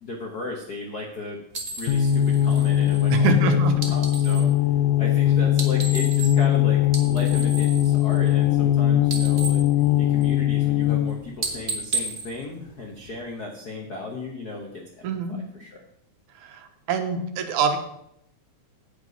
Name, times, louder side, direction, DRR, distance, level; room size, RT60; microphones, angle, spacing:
voice 1, 0.0-1.4 1.7-3.6 3.9-4.5 5.0-9.6 10.0-14.7 15.0-15.8, left 3 dB, 65° left, 0 dB, 1.0 m, -35 dB
sound 1, 1.5-4.5 5.5-6.6 6.8-8.7 9.0-10.5 10.9-11.1 11.4-13.2, right 3 dB, 35° right, 1.0 m, -34 dB
sound 2, 1.9-11.2, left 11 dB, 85° left, 2.1 m, -20 dB
voice 2, 3.1-3.7 15.0-15.4 16.5-16.6 16.9-17.8, right 6 dB, 80° right, 6 dB, 2.4 m, -24 dB
8.8 x 8.5 x 5.2 m, 0.74 s
omnidirectional pair, 3.6 m